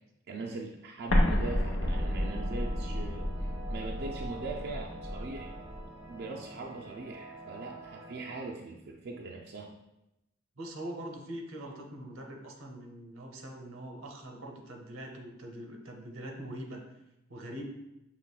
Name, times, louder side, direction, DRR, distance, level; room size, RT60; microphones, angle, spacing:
voice 1, 0.3-5.5 6.1-9.8, right 3 dB, 55° right, 0 dB, 0.3 m, -41 dB
Explosion, 1.1-5.9, left 1 dB, 75° left, 0.8 m, -31 dB
sound 1, 1.8-8.5, right 2 dB, 5° right, 0.7 m, -46 dB
voice 2, 10.6-16.8 17.3-17.6, right 1 dB, 90° right, 2 dB, 0.7 m, -43 dB
5.9 x 3.0 x 2.2 m, 0.90 s
head